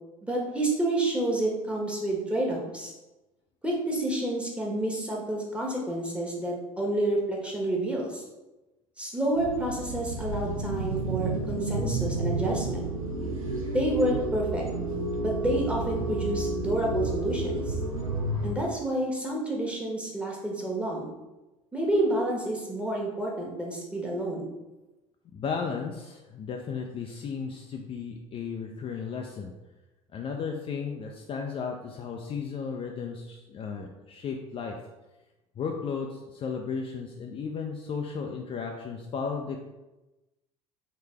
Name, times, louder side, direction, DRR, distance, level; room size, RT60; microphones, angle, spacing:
voice 1, 0.2-2.9 3.6-8.2 9.0-12.9 13.7-14.6 15.2-17.8 18.4-21.1 21.7-24.4, right 1 dB, 5° right, -2 dB, 1.3 m, -29 dB
sound 1, 9.3-18.5, right 2 dB, 85° right, 0.6 m, -31 dB
voice 2, 25.3-29.5 30.1-34.8 35.6-39.6, left 5 dB, 30° left, 2 dB, 0.5 m, -34 dB
4.8 x 3.3 x 3.3 m, 1.0 s
figure-of-eight pair, 65°, 17 cm